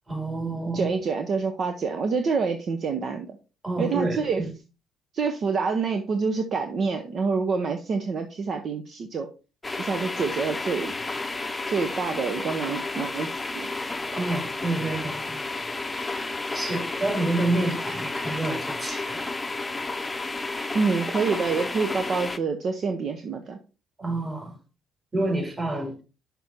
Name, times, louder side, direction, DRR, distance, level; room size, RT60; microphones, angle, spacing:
voice 1, 0.1-0.9 3.6-4.5 14.1-15.5 16.5-19.3 24.0-24.6 25.1-26.0, right 2 dB, 25° right, 3.5 m, -28 dB
voice 2, 0.7-3.4 3.8-4.4 5.1-9.3 9.8-10.9 11.7-13.7 20.7-23.6, right 5 dB, 55° right, 0.9 m, -27 dB
sound 1, 9.6-22.4, left 3 dB, 20° left, 0.7 m, -31 dB
6.1 x 5.4 x 4.3 m
supercardioid pair, 65°, 0 cm